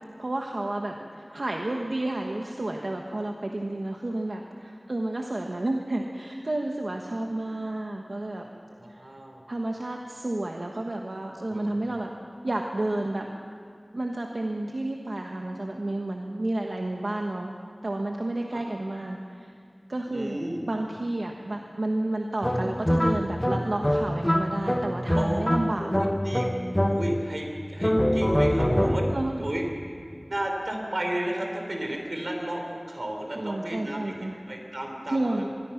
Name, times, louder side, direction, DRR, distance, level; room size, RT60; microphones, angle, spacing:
voice 1, 0.2-8.5 8.9-9.1 9.5-12.1 12.4-13.3 13.9-17.5 17.8-19.5 19.9-20.4 20.7-25.9 29.1-29.4 33.4-34.4 35.1-35.5, right 1 dB, 90° right, 2 dB, 1.3 m, -31 dB
voice 2, 8.8-9.4 11.5-11.9 18.5-18.6 20.1-20.6 25.1-25.4 25.8-29.1 29.4-29.9 30.3-35.5, right 1 dB, 70° right, 2 dB, 4.3 m, -33 dB
sound 1, 22.4-27.4 27.8-29.3, equal, 15° left, 1.2 m, -25 dB
25.0 x 21.5 x 5.9 m, 2.3 s
wide cardioid pair, 40°, 0 cm